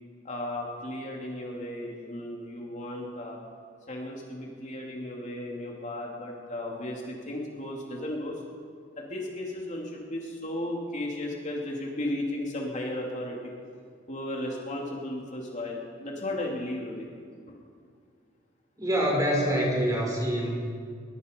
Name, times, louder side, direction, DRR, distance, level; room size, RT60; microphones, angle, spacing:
voice 1, 0.2-3.4 3.9-8.4 9.0-13.5 14.1-17.1 17.5-17.6, left 1 dB, 40° left, -1 dB, 3.0 m, -35 dB
voice 2, 18.8-20.5, equal, 20° right, -2 dB, 5.8 m, -25 dB
22.0 x 22.0 x 5.4 m, 2.2 s
head